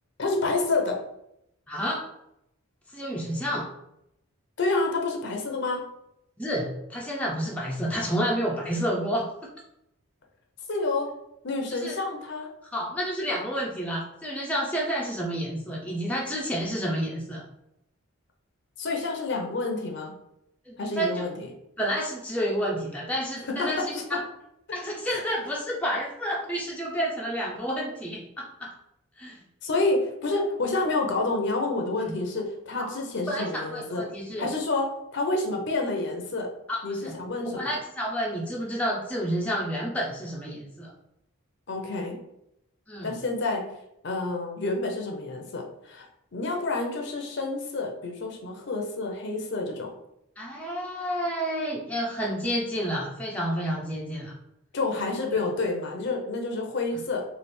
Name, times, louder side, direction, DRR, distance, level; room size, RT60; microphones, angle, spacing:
voice 1, 0.2-1.0 4.6-5.9 10.7-11.1 11.4-12.5 18.8-20.1 20.8-21.5 23.5-24.0 25.1-25.2 29.6-34.0 34.4-36.5 36.8-37.7 41.7-42.2 43.0-43.6 44.0-49.9 54.7-57.2, left 3 dB, 50° left, 2 dB, 0.6 m, -29 dB
voice 2, 1.7-2.1 2.9-3.7 6.4-9.5 11.7-11.9 12.7-17.4 20.7-21.3 21.8-24.2 24.7-28.7 29.2-29.4 32.0-32.2 32.7-32.9 33.3-34.5 36.7-37.1 37.5-40.9 42.9-43.2 50.4-54.4, equal, 5° left, -4 dB, 0.5 m, -30 dB
3.2 x 2.4 x 4.2 m, 0.80 s
head